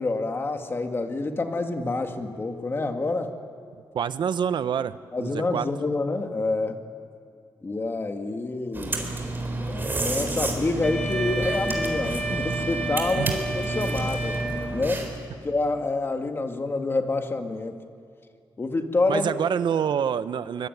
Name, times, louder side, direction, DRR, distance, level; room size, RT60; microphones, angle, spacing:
voice 1, 0.0-3.4 5.1-6.8 7.6-9.1 9.7-14.4 14.7-15.1 15.4-17.8 18.6-19.3, left 3 dB, 30° left, 5 dB, 2.0 m, -27 dB
voice 2, 3.9-5.7 13.2-13.3 19.1-20.7, right 8 dB, 65° right, 13 dB, 0.8 m, -26 dB
sound 1, 8.7-15.3, right 2 dB, 25° right, 4.0 m, -30 dB
Wind instrument woodwind instrument, 10.8-15.0, right 1 dB, 5° left, 2.4 m, -31 dB
24.0 x 22.5 x 9.4 m, 2.2 s
wide cardioid pair, 130°, 8 cm